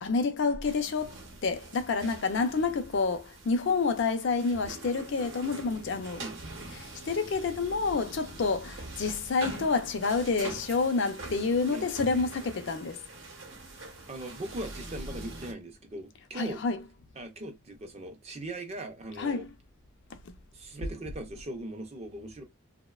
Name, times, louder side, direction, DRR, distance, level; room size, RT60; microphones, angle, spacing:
voice 1, 0.0-1.2 1.4-6.2 6.8-13.0 16.3-16.8 19.2-19.5 20.1-20.3, left 4 dB, 55° left, 0.4 m, -29 dB
sound 1, 0.6-15.5, right 2 dB, 60° right, 0.7 m, -44 dB
voice 2, 14.1-16.6 17.2-19.5 20.5-22.4, right 1 dB, 30° right, 0.4 m, -40 dB
2.6 x 2.1 x 2.2 m
head